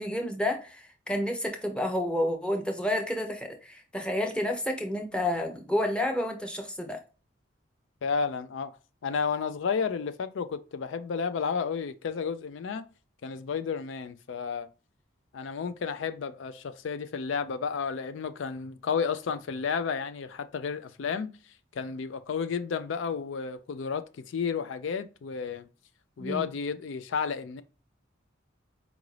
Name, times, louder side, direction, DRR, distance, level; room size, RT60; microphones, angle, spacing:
voice 1, 0.0-7.0 26.2-26.5, left 1 dB, 5° left, 0.6 m, -30 dB
voice 2, 8.0-8.7 9.0-12.9 13.2-14.7 15.3-21.3 21.8-25.7 26.2-27.6, left 6 dB, 75° left, 0.4 m, -32 dB
4.7 x 2.6 x 3.1 m
head